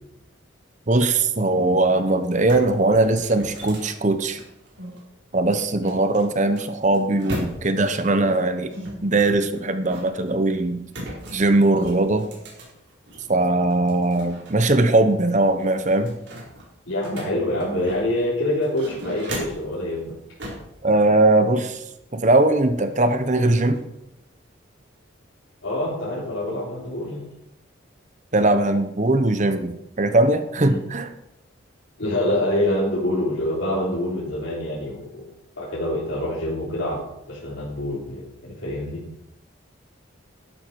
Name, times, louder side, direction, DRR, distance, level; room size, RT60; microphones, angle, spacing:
voice 1, 0.9-4.4 5.3-8.7 9.0-10.9 11.3-12.3 13.3-16.2 20.8-21.8 22.1-23.8 28.3-31.1, right 2 dB, 35° right, 9 dB, 0.9 m, -20 dB
sound 1, 1.9-2.0 2.2-5.0 5.9-7.9 8.7-10.3 10.9-13.3 13.7-14.8 15.1-15.2 15.6-18.2 18.6-19.7 20.4-20.7, equal, 60° right, 4.5 m, -37 dB
voice 2, 16.9-20.1 25.6-27.2 30.6-30.8 32.0-35.3 35.6-37.0 37.3-39.0, left 1 dB, 75° left, -8 dB, 3.6 m, -26 dB
12.0 x 12.0 x 4.7 m, 0.84 s
head